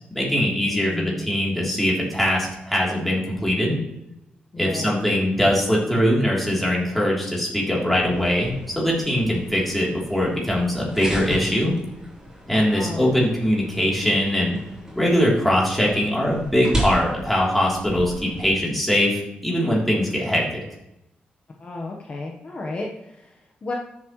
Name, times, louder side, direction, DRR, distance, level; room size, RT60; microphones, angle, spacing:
voice 1, 0.1-3.8 4.6-11.7 12.5-14.5 14.9-20.4, equal, 5° left, -4 dB, 3.2 m, -22 dB
voice 2, 0.7-1.3 4.5-4.9 12.7-13.2 21.6-23.7, left 3 dB, 35° left, -1 dB, 1.1 m, -33 dB
sound 1, 7.9-18.5, right 1 dB, 15° right, 3.8 m, -35 dB
13.5 x 7.4 x 3.1 m, 0.86 s
wide cardioid pair, 130°, 3 cm